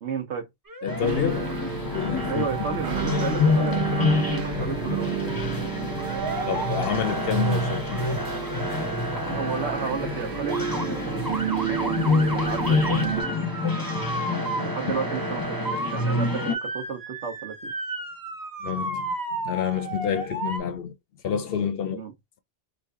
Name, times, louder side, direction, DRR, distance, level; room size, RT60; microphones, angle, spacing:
voice 1, 0.0-0.5 2.3-5.1 9.2-13.2 14.5-17.7 21.9-22.1, right 6 dB, 75° right, 1.1 m, -33 dB
Motor vehicle (road) / Siren, 0.7-1.6 1.9-2.5 2.8-4.2 6.0-6.6 6.9-9.9 10.3-10.8 11.2-20.6, right 2 dB, 25° right, 0.6 m, -34 dB
voice 2, 0.8-2.7 6.5-8.0 18.6-21.0 21.2-22.0, left 8 dB, 65° left, 0.7 m, -29 dB
sound 1, 0.9-16.5, left 3 dB, 20° left, 0.7 m, -28 dB
sound 2, 1.0-13.2, right 9 dB, 55° right, 0.8 m, -31 dB
3.0 x 2.5 x 3.5 m
omnidirectional pair, 1.2 m